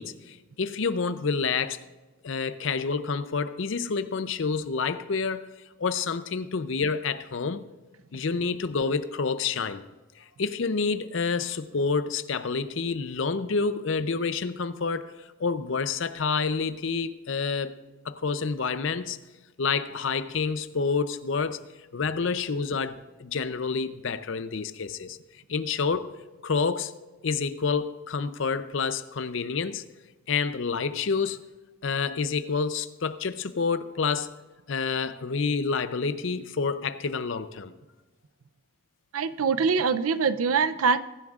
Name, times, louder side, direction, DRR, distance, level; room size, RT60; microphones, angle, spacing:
voice 1, 0.0-1.8 2.2-5.5 5.8-7.6 8.1-9.8 10.2-15.1 15.4-17.8 18.0-19.2 19.6-21.6 21.9-25.2 25.5-26.1 26.4-26.9 27.2-29.8 30.3-31.4 31.8-34.3 34.7-37.7, left 5 dB, 65° left, 0.6 m, -28 dB
voice 2, 39.1-41.0, right 5 dB, 85° right, 0.6 m, -23 dB
22.0 x 11.0 x 2.4 m
head